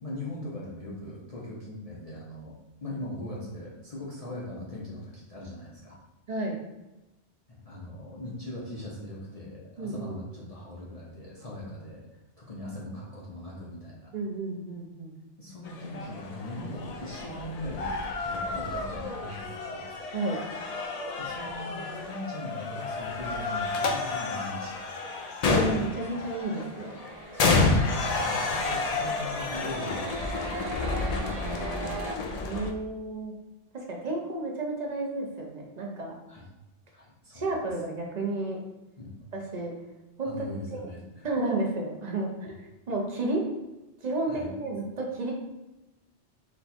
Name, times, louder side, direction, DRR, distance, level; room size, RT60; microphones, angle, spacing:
voice 1, 0.0-2.6 2.8-6.0 7.5-14.1 15.4-19.8 21.2-24.8 27.3-30.6 36.3-36.4 36.9-37.7 39.0-39.1 40.2-41.3 44.3-44.5, left 1 dB, 35° left, -6 dB, 0.7 m, -40 dB
voice 2, 9.8-10.1 14.1-15.1 20.1-20.4 25.5-26.9 30.8-32.0 32.3-33.3 33.7-36.2 37.3-38.6 39.3-39.7 40.2-40.3 41.2-43.4 44.0-45.3, right 2 dB, 40° right, 0 dB, 0.8 m, -32 dB
sound 1, 15.6-32.7, left 3 dB, 65° left, 0.4 m, -30 dB
sound 2, 26.0-32.2, right 4 dB, 75° right, 0.3 m, -40 dB
4.2 x 2.3 x 4.1 m, 1.0 s
omnidirectional pair, 1.2 m